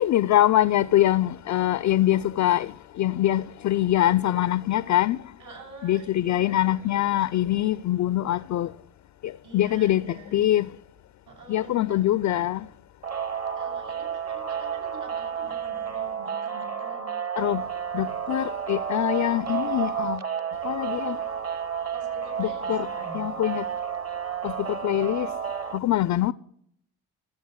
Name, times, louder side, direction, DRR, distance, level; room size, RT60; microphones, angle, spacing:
voice 1, 0.0-5.2 5.8-8.7 9.2-10.7 11.5-12.7 17.4-17.6 17.9-20.2 20.6-21.2 22.4-22.9 23.1-23.7 24.4-25.3 25.7-26.3, left 13 dB, 40° left, 0.4 m, -24 dB
voice 2, 5.4-6.9 9.4-10.4 11.3-12.1 13.6-17.2 21.9-23.3, right 2 dB, 60° right, 5.8 m, -45 dB
sound 1, 13.0-25.8, right 7 dB, 30° right, 1.0 m, -31 dB
14.0 x 7.9 x 6.3 m
hypercardioid pair, 40°, 49 cm